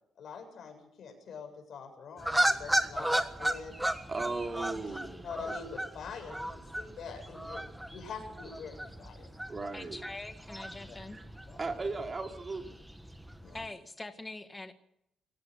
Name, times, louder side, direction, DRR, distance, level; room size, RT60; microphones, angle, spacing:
voice 1, 0.2-3.7 4.1-4.3 4.7-9.3 10.8-11.0 11.5-11.6 13.4-13.6, left 5 dB, 55° left, 5 dB, 7.5 m, -45 dB
sound 1, 2.2-13.7, right 1 dB, 5° right, 1.4 m, -35 dB
voice 2, 2.2-3.3 4.1-5.5 9.5-10.0 11.1-11.2 11.6-12.8, right 3 dB, 25° right, 4 dB, 3.3 m, -38 dB
voice 3, 9.7-11.2 13.5-14.7, left 2 dB, 15° left, 7 dB, 1.8 m, -43 dB
23.5 x 17.0 x 6.7 m, 0.75 s
cardioid pair, 150°, 0 cm